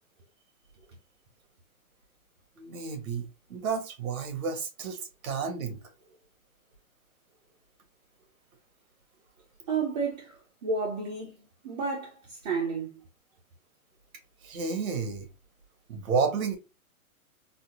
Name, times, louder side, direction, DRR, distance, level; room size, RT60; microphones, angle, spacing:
voice 1, 2.6-5.8 14.4-15.3 15.9-16.6, right 5 dB, 70° right, 1.5 m, -31 dB
voice 2, 9.7-11.4 11.6-13.0, right 4 dB, 30° right, 0.6 m, -31 dB
4.0 x 2.2 x 2.8 m
hypercardioid pair, 150°, 43 cm